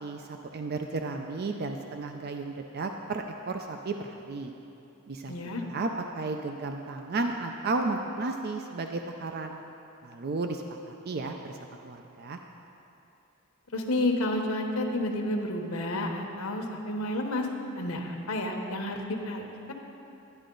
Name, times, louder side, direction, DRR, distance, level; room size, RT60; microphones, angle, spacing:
voice 1, 0.0-4.5 5.1-5.3 5.6-5.9 6.1-9.6 10.0-11.6 11.8-12.4, right 3 dB, 50° right, 4 dB, 0.4 m, -33 dB
voice 2, 5.3-5.6 13.7-17.5 17.7-19.7, left 1 dB, 85° left, 3 dB, 1.1 m, -30 dB
11.5 x 10.0 x 3.9 m, 2.8 s
head